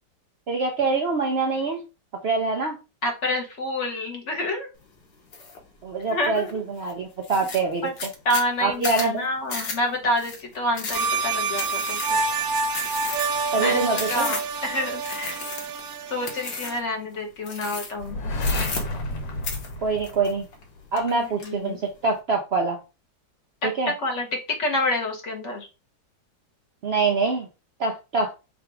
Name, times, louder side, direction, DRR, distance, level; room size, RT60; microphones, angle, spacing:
voice 1, 0.5-1.8 2.2-2.8 5.8-7.9 8.6-9.3 13.5-14.3 19.8-20.5 20.9-22.8 23.6-23.9 26.8-27.5 27.8-28.3, right 3 dB, 85° right, 2 dB, 0.5 m, -25 dB
voice 2, 3.0-4.7 6.1-6.5 7.8-7.9 8.2-12.3 13.6-15.4 16.1-18.2 21.2-21.8 23.6-24.3 24.6-25.7, left 1 dB, 45° left, 1 dB, 1.1 m, -28 dB
sound 1, 5.3-5.6 6.0-6.5 6.9-7.0 7.2-14.6 15.0-15.9 16.2-16.9 17.4-18.1 18.4-19.2 19.4-20.6 21.0-21.5, left 4 dB, 65° left, 1.5 m, -34 dB
sound 2, 10.9-16.8, right 4 dB, 65° right, 0.9 m, -27 dB
sound 3, 18.0-20.8, left 1 dB, 80° left, 1.8 m, -30 dB
3.9 x 2.5 x 4.5 m, 0.29 s
omnidirectional pair, 2.0 m